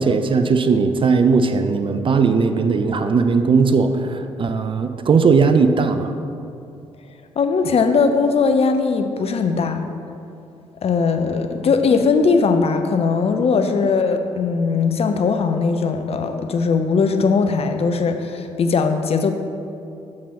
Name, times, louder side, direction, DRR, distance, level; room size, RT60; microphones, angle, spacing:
voice 1, 0.0-6.2, right 5 dB, 35° right, 8 dB, 0.4 m, -18 dB
voice 2, 7.4-9.8 10.8-19.3, left 4 dB, 40° left, 7 dB, 0.6 m, -19 dB
7.2 x 4.7 x 4.2 m, 2.6 s
figure-of-eight pair, 40°, 15 cm